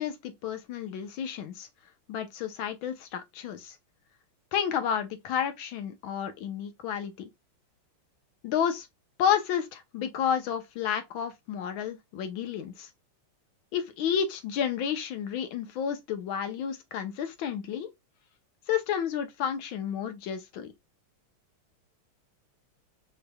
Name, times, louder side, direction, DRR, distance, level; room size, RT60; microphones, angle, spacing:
voice 1, 0.0-1.7 2.1-3.7 4.5-7.3 8.4-8.9 9.2-12.9 13.7-17.9 18.7-20.7, left 8 dB, 70° left, 1.5 m, -31 dB
4.9 x 2.9 x 2.2 m
omnidirectional pair, 2.4 m